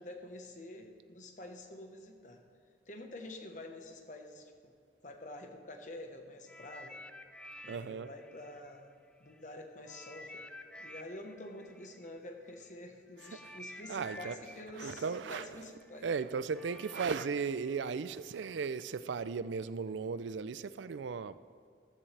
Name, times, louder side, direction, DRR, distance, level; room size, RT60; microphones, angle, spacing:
voice 1, 0.0-2.4 2.9-4.7 5.0-7.0 7.6-8.9 9.2-10.5 10.8-16.1, left 1 dB, 45° left, 4 dB, 1.1 m, -48 dB
sound 1, 6.5-9.4 9.9-18.8 19.6-19.7, left 1 dB, 5° left, 0.3 m, -52 dB
voice 2, 7.7-8.1 13.2-21.4, right 5 dB, 85° right, 15 dB, 0.4 m, -37 dB
14.5 x 13.0 x 3.3 m, 2.2 s
head